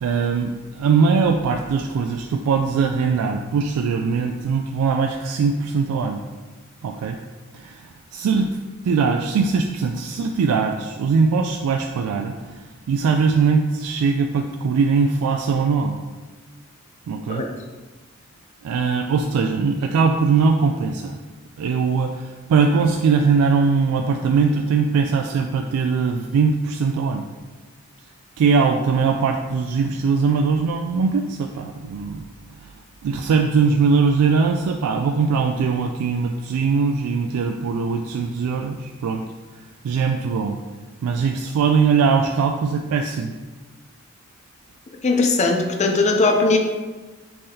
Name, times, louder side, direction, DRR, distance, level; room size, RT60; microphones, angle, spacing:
voice 1, 0.0-6.2 6.8-7.2 7.5-8.6 8.8-16.0 17.1-17.4 18.6-21.2 21.6-27.3 28.4-32.2 32.6-32.7 33.0-39.2 39.8-40.6 41.0-43.3, right 5 dB, 90° right, 6 dB, 0.3 m, -21 dB
voice 2, 45.0-46.6, left 3 dB, 30° left, 3 dB, 0.4 m, -19 dB
5.4 x 3.5 x 2.7 m, 1.3 s
head